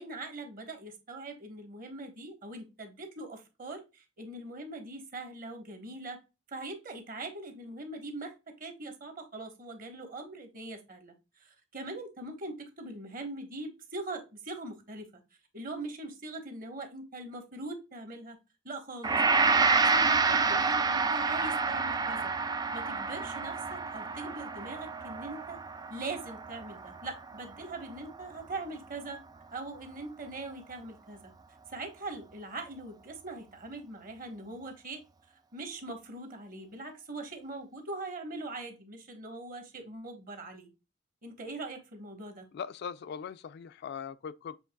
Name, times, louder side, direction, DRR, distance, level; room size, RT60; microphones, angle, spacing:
voice 1, 0.0-6.2 6.5-8.3 8.6-11.1 11.4-15.1 15.5-18.4 18.6-19.2 19.5-22.3 22.7-25.6 25.9-29.2 29.5-31.3 31.7-35.0 35.5-40.7 41.2-42.4, right 2 dB, 45° right, 1.2 m, -41 dB
Gong, 19.0-28.2, right 4 dB, 20° right, 0.4 m, -28 dB
voice 2, 42.5-44.6, left 7 dB, 55° left, 0.3 m, -40 dB
7.0 x 3.2 x 2.2 m
head